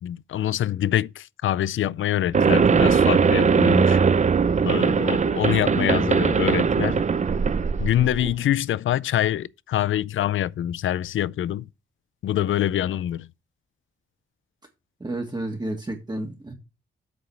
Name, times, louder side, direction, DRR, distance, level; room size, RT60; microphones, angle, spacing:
voice 1, 0.0-4.0 4.7-7.0 7.8-11.7 12.2-13.3, left 12 dB, 70° left, 0.4 m, -25 dB
sound 1, 2.3-8.3, right 5 dB, 35° right, 0.5 m, -20 dB
voice 2, 5.7-6.1 15.0-16.5, right 1 dB, 20° right, 1.7 m, -31 dB
8.0 x 4.9 x 5.9 m
cardioid pair, 85°, 21 cm